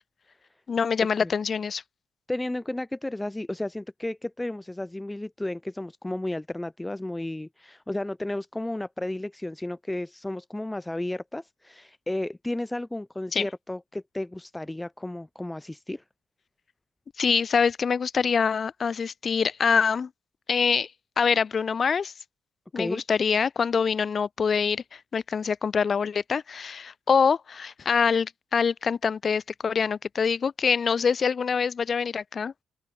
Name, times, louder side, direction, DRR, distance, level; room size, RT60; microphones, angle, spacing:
voice 1, 0.7-1.8 13.3-13.4 17.2-20.1 20.5-20.9 21.2-22.1 22.7-32.5, left 6 dB, 45° left, 0.7 m, -25 dB
voice 2, 2.3-16.0 22.7-23.0, left 1 dB, 10° left, 3.5 m, -33 dB
open air
cardioid pair, 80°, 0 cm